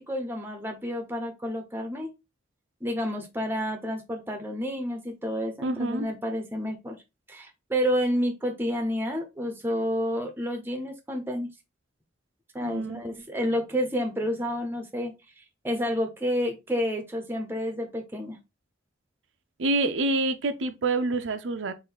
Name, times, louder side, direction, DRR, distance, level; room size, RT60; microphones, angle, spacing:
voice 1, 0.1-2.1 2.8-7.0 7.3-11.5 12.5-15.1 15.6-18.4, equal, 10° right, 0.7 m, -29 dB
voice 2, 5.6-6.1 12.6-13.0 19.6-21.7, right 2 dB, 80° right, 0.6 m, -27 dB
3.7 x 2.6 x 3.9 m
head